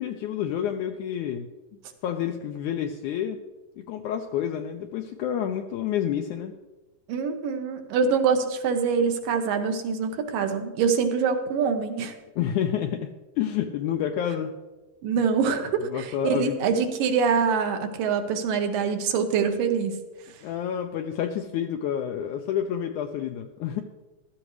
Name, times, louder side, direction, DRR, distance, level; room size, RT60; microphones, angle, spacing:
voice 1, 0.0-1.5 2.0-3.4 3.8-6.5 12.4-14.5 15.9-16.7 20.4-23.8, left 9 dB, 85° left, 5 dB, 1.8 m, -29 dB
voice 2, 7.1-12.2 15.0-20.0, right 6 dB, 80° right, 6 dB, 2.7 m, -25 dB
15.0 x 12.5 x 3.2 m, 1.1 s
omnidirectional pair, 4.0 m